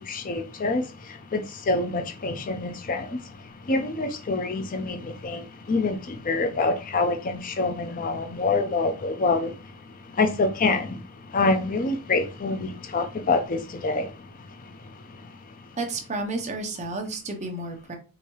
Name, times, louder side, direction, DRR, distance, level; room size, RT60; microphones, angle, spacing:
voice 1, 0.0-3.2 3.7-9.5 10.1-11.0 11.3-14.1, left 3 dB, 35° left, 0.5 m, -26 dB
voice 2, 15.8-18.0, right 2 dB, 30° right, 0.8 m, -31 dB
4.6 x 2.7 x 3.1 m
head